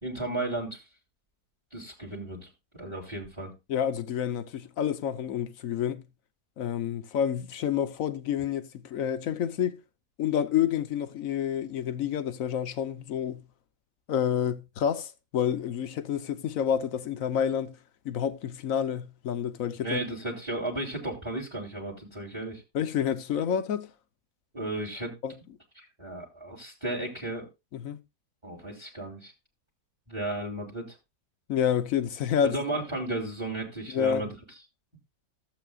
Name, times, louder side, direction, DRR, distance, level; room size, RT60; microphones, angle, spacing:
voice 1, 0.0-0.8 1.7-2.5 2.7-3.5 19.8-22.6 24.5-25.1 25.8-27.5 28.4-29.3 30.1-31.0 32.4-34.3, right 2 dB, 15° right, 2.4 m, -34 dB
voice 2, 3.7-6.0 6.6-9.8 10.2-13.4 14.1-17.8 18.0-20.0 22.7-23.9 25.2-25.3 27.7-28.0 31.5-32.6 33.9-34.3, left 8 dB, 60° left, 1.1 m, -29 dB
15.0 x 7.8 x 2.4 m
omnidirectional pair, 1.9 m